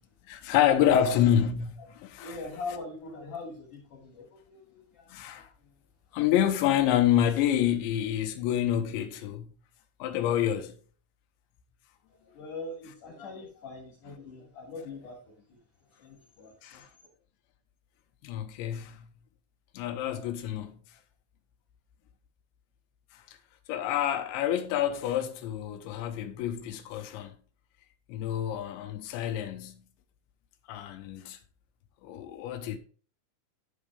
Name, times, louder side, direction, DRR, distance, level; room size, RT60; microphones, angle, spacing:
voice 1, 0.3-2.4 5.1-5.5 6.1-9.5 10.0-10.8 16.6-16.9 18.2-19.1 19.7-20.7 23.1-23.4 23.7-27.4 28.1-29.9 30.7-31.4 32.0-32.8, left 10 dB, 75° left, 3.1 m, -28 dB
voice 2, 2.2-5.4 12.3-15.6 16.0-16.8, left 3 dB, 45° left, 3.7 m, -42 dB
12.0 x 5.0 x 3.5 m
omnidirectional pair, 5.6 m